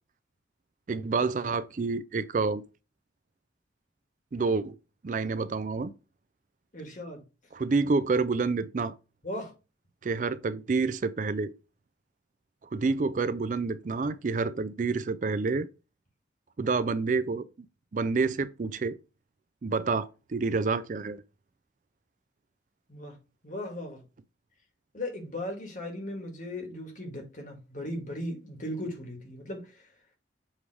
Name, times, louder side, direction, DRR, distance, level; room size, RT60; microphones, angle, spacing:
voice 1, 0.9-2.6 4.3-4.8 5.0-5.9 7.5-8.9 10.0-11.5 12.7-15.7 16.6-17.5 17.9-19.0 19.6-21.2, right 4 dB, 45° right, 0.4 m, -28 dB
voice 2, 6.7-7.2 9.2-9.5 22.9-23.2 23.4-24.0 24.9-29.9, left 1 dB, 45° left, 1.9 m, -37 dB
7.3 x 3.4 x 4.7 m
head